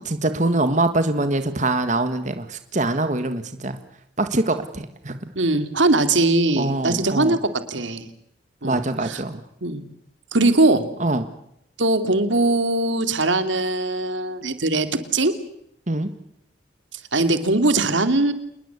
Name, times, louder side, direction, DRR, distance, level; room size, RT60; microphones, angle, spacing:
voice 1, 0.1-3.8 4.2-5.3 6.6-7.4 8.6-9.4 11.0-11.3 15.9-16.1, right 2 dB, 40° right, 9 dB, 1.7 m, -23 dB
voice 2, 5.4-7.4 7.7-8.1 8.6-9.2 9.6-9.8 10.3-10.8 11.8-14.9 15.1-15.3 16.9-18.3, right 2 dB, 85° right, 10 dB, 2.7 m, -20 dB
27.5 x 21.0 x 8.2 m, 0.74 s
head